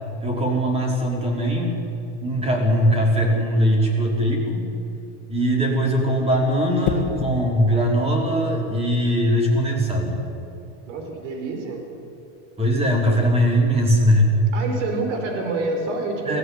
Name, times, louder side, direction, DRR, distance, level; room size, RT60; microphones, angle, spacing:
voice 1, 0.2-1.8 2.2-4.7 5.3-10.2 12.6-14.3 16.2-16.4, equal, 15° right, 0 dB, 5.1 m, -20 dB
sound 1, 6.8-7.4 9.3-9.6, left 8 dB, 40° left, 2.2 m, -28 dB
voice 2, 10.9-11.8 14.5-16.4, right 3 dB, 75° right, 4 dB, 4.5 m, -27 dB
22.0 x 15.5 x 9.9 m, 2.8 s
supercardioid pair, 140°, 37 cm